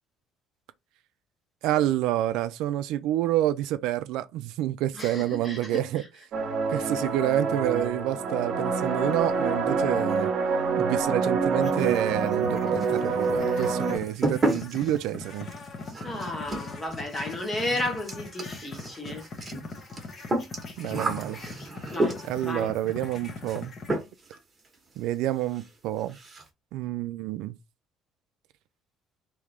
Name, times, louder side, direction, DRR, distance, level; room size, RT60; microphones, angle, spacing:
voice 1, 1.6-6.0 6.7-10.3 10.8-15.5 20.8-21.4 22.3-23.7 25.0-26.2 26.7-27.5, right 13 dB, 80° right, 0.4 m, -28 dB
voice 2, 4.9-6.1 16.0-19.3 21.9-22.7, left 1 dB, 15° left, 1.0 m, -33 dB
sound 1, 6.3-14.0, right 4 dB, 45° right, 0.8 m, -26 dB
sound 2, 11.6-23.9, left 3 dB, 35° left, 0.8 m, -41 dB
sound 3, 12.8-13.3 13.6-22.5 23.5-23.6 23.9-24.4 24.6-24.7 25.1-25.2 25.5-25.7 26.0-26.5, right 2 dB, 20° right, 1.1 m, -32 dB
3.6 x 2.8 x 3.2 m
cardioid pair, 160°, 0 cm